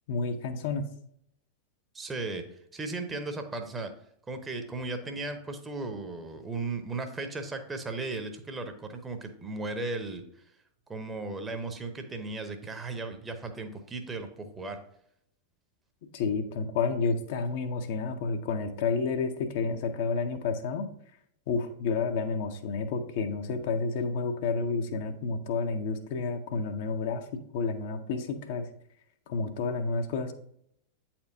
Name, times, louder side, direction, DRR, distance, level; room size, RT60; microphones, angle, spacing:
voice 1, 0.1-0.8 16.1-20.9 21.5-27.2 27.5-28.7 29.3-30.3, left 4 dB, 50° left, 6 dB, 0.6 m, -30 dB
voice 2, 1.9-2.4 2.7-3.9 4.3-10.2 10.9-14.8, right 3 dB, 15° right, 7 dB, 0.8 m, -36 dB
8.3 x 4.3 x 2.6 m, 0.70 s
figure-of-eight pair, 90°, 0 cm